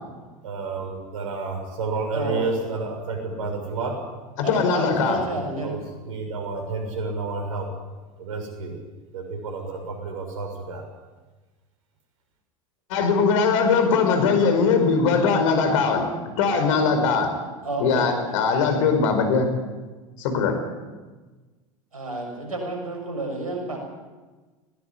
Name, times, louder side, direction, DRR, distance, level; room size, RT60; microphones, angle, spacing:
voice 1, 0.4-3.9 5.6-5.8 6.1-7.6 8.2-8.7 9.1-10.8, right 4 dB, 70° right, 4 dB, 6.4 m, -30 dB
voice 2, 2.1-2.6 4.4-5.7 17.6-18.1 21.9-23.8, right 2 dB, 90° right, 2 dB, 6.6 m, -30 dB
voice 3, 4.4-5.2 12.9-16.1 16.4-17.3 17.8-19.5 20.2-20.5, left 5 dB, 65° left, 7 dB, 5.0 m, -20 dB
20.0 x 18.5 x 8.6 m, 1.3 s
hypercardioid pair, 85°, 18 cm